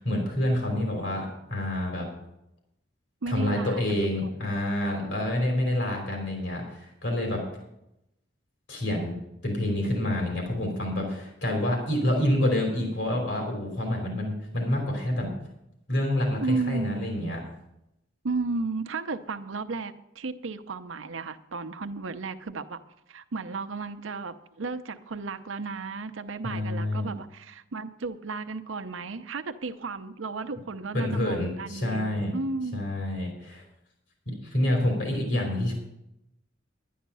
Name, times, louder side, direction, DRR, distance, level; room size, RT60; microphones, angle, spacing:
voice 1, 0.0-2.1 3.3-7.4 8.7-9.2 9.4-15.3 15.9-17.4 26.4-27.1 30.9-32.4 32.7-33.6 34.4-35.7, left 1 dB, 70° left, 1 dB, 3.4 m, -27 dB
voice 2, 3.2-4.1 16.4-17.1 18.2-22.8 23.1-32.8, right 3 dB, 85° right, 9 dB, 0.7 m, -34 dB
11.5 x 10.0 x 5.5 m, 0.83 s
head